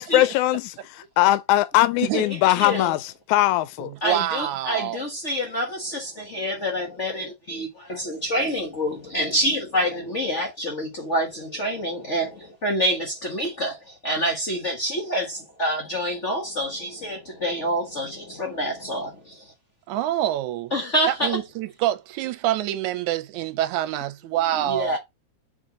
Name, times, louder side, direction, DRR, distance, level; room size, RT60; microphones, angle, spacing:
voice 1, 0.0-3.9, left 15 dB, 85° left, 2.0 m, -21 dB
voice 2, 2.2-2.9 4.0-19.5 20.7-21.4 24.5-25.0, equal, 45° left, 0.9 m, -27 dB
voice 3, 3.8-5.1 19.9-20.7 21.1-25.0, right 13 dB, 85° right, 2.1 m, -26 dB
6.4 x 3.7 x 3.9 m
omnidirectional pair, 3.4 m